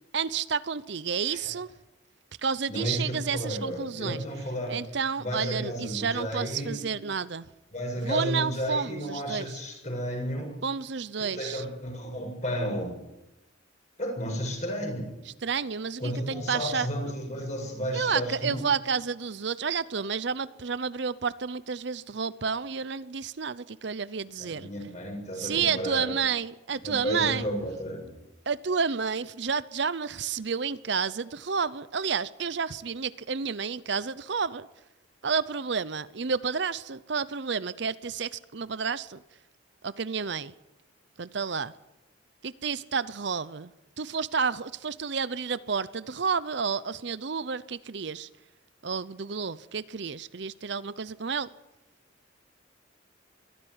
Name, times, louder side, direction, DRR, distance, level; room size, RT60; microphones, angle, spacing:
voice 1, 0.1-1.7 2.4-4.2 4.7-7.5 8.0-9.6 10.6-11.6 15.4-16.9 17.9-24.7 25.4-27.5 28.5-34.7 35.2-39.2 39.8-40.5 41.2-41.7 42.4-43.7 44.0-48.3 48.8-51.5, right 6 dB, 60° right, 0.7 m, -30 dB
voice 2, 2.7-4.8 5.2-6.8 7.7-10.5 11.2-13.0 14.0-15.2 16.0-18.7 24.4-26.1 26.8-28.2, equal, 35° left, 7.4 m, -32 dB
22.5 x 14.5 x 9.6 m
head